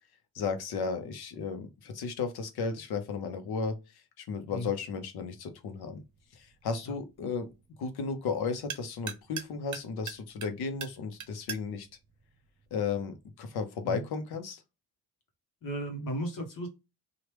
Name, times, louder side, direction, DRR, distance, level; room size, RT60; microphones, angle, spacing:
voice 1, 0.3-6.0 6.3-7.5 7.8-11.9 12.7-14.6, left 5 dB, 90° left, 0.8 m, -34 dB
sound 1, 5.6-13.2, right 8 dB, 50° right, 0.7 m, -46 dB
voice 2, 15.6-16.7, equal, 60° left, 1.1 m, -35 dB
3.0 x 2.4 x 3.2 m
cardioid pair, 125°, 37 cm